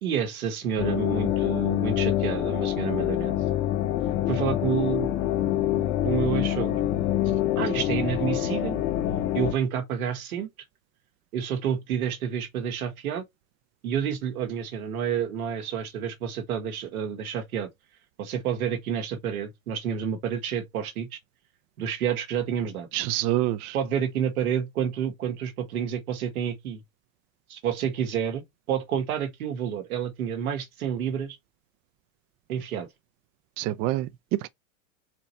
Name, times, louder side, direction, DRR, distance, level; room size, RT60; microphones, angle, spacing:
voice 1, 0.0-3.4 4.3-5.1 6.0-6.8 7.6-8.8 9.3-10.5 11.3-13.2 13.8-17.7 18.2-21.2 21.8-22.9 23.7-26.8 27.5-31.4 32.5-32.9, right 8 dB, 85° right, 1.4 m, -29 dB
sound 1, 0.8-9.5, left 12 dB, 60° left, 1.0 m, -26 dB
voice 2, 22.9-23.8 33.6-34.5, right 15 dB, 40° right, 0.4 m, -27 dB
4.3 x 3.0 x 4.0 m
hypercardioid pair, 110°, 42 cm